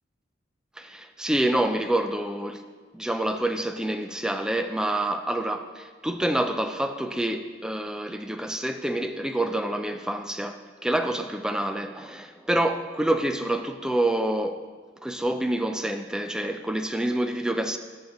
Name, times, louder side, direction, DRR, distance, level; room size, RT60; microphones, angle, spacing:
voice 1, 0.8-2.6 2.9-14.6 15.0-17.8, right 1 dB, 5° right, 0.3 m, -27 dB
13.0 x 6.4 x 3.0 m
head